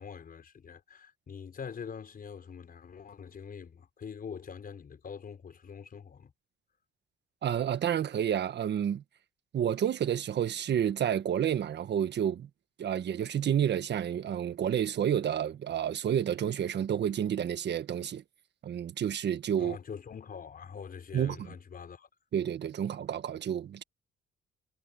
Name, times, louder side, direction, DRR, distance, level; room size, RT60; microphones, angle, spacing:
voice 1, 0.0-6.3 19.6-22.1, left 6 dB, 45° left, 4.7 m, -44 dB
voice 2, 7.4-9.0 9.5-12.5 12.8-18.2 18.6-19.8 21.1-21.5 22.3-23.8, right 9 dB, 60° right, 1.5 m, -30 dB
cardioid pair, 90°, 20 cm